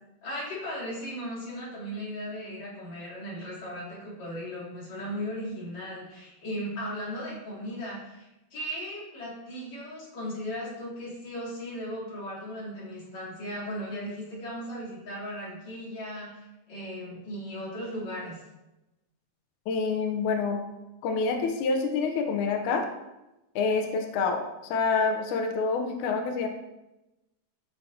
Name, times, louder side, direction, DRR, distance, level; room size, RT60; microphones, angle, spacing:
voice 1, 0.2-18.4, equal, 45° left, -7 dB, 4.2 m, -37 dB
voice 2, 19.7-20.6 21.0-22.8 23.5-24.4 24.7-26.5, left 4 dB, 85° left, 4 dB, 1.7 m, -27 dB
14.5 x 5.8 x 2.8 m, 0.97 s
omnidirectional pair, 4.7 m